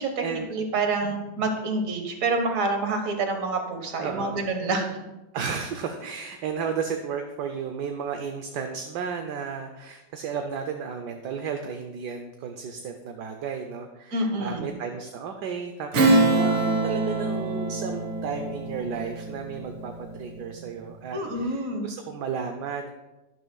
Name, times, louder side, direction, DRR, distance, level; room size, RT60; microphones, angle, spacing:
voice 1, 0.0-5.0 14.1-14.7 21.1-21.9, right 3 dB, 45° right, 4 dB, 1.6 m, -27 dB
voice 2, 4.0-4.4 5.3-22.9, right 6 dB, 65° right, 5 dB, 1.2 m, -33 dB
Strum, 15.9-20.8, right 2 dB, 85° right, 2.1 m, -25 dB
12.0 x 11.0 x 2.3 m, 1.0 s
omnidirectional pair, 2.1 m